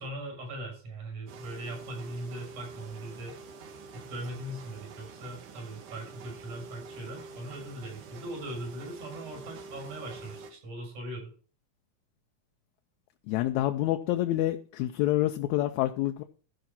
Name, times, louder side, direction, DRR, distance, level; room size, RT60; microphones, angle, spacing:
voice 1, 0.0-3.3 3.9-11.3, right 1 dB, 70° right, 1 dB, 7.9 m, -40 dB
sound 1, 1.3-10.5, right 3 dB, 90° right, 3.0 m, -46 dB
voice 2, 13.3-16.2, left 14 dB, 80° left, 6 dB, 1.9 m, -27 dB
14.0 x 5.1 x 5.9 m, 0.39 s
omnidirectional pair, 3.5 m